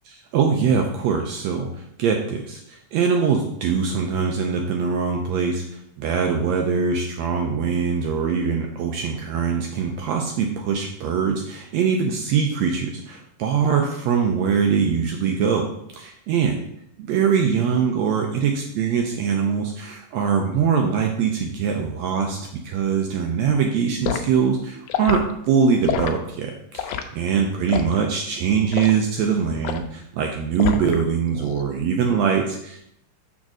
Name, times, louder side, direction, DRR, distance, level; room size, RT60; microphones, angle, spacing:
voice 1, 0.3-15.7 16.0-16.5 17.1-32.8, right 6 dB, 90° right, 2 dB, 1.5 m, -22 dB
Liquid, 24.0-24.3 24.9-25.2 25.8-26.1 26.8-27.1 27.7-28.0 28.7-29.0 29.6-29.9 30.6-31.0 31.4-31.6, left 8 dB, 80° left, 1.9 m, -26 dB
6.4 x 3.6 x 6.1 m, 0.74 s
omnidirectional pair, 3.8 m